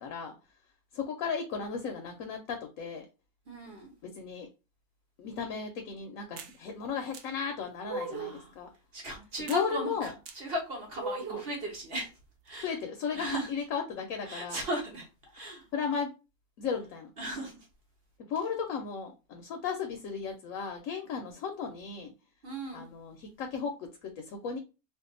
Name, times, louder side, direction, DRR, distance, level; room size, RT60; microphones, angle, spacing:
voice 1, 0.0-0.3 0.9-3.1 4.0-4.5 5.2-8.7 9.5-10.1 11.3-11.4 12.6-14.6 15.7-16.1 16.6-17.1 18.2-22.1 22.7-24.6, left 6 dB, 70° left, 5 dB, 0.9 m, -35 dB
voice 2, 3.5-3.9 8.1-8.5 8.9-12.1 12.4-12.7 13.1-13.5 14.3-15.1 15.3-15.6 17.2-17.6 22.4-22.9, right 1 dB, 45° right, 0 dB, 0.9 m, -37 dB
sound 1, 6.4-6.5 7.1-7.2 7.8-8.4 9.5-9.6 10.2-10.4 11.0-11.5, right 3 dB, 85° right, 0.5 m, -38 dB
2.6 x 2.5 x 3.7 m, 0.30 s
omnidirectional pair, 1.6 m